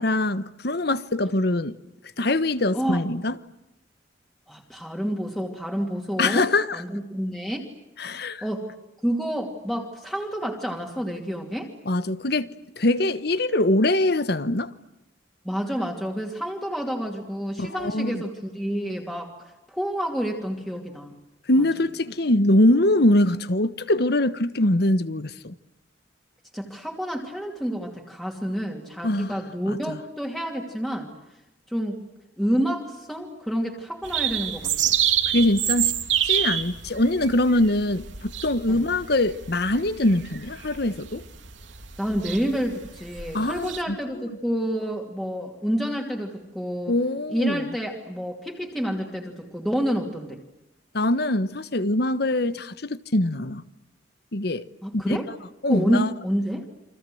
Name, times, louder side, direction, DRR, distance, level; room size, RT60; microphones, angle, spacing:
voice 1, 0.0-1.7 2.2-3.4 6.2-6.8 8.0-8.4 11.8-14.7 17.6-18.3 21.5-25.5 29.0-29.3 29.7-30.0 35.3-35.9 36.2-41.2 43.3-44.0 46.9-47.6 50.9-53.6 54.3-54.7 54.9-55.2 55.6-56.1, left 1 dB, 55° left, 1.2 m, -23 dB
voice 2, 4.5-6.5 6.7-7.6 8.4-8.7 9.0-11.7 15.4-21.1 26.5-31.1 31.7-32.0 32.4-34.9 38.7-38.9 42.0-46.9 47.3-50.4 54.8-55.3 55.7-56.6, equal, ahead, 2.7 m, -29 dB
sound 1, 34.0-43.8, right 10 dB, 80° right, 3.1 m, -28 dB
29.5 x 25.0 x 7.9 m
head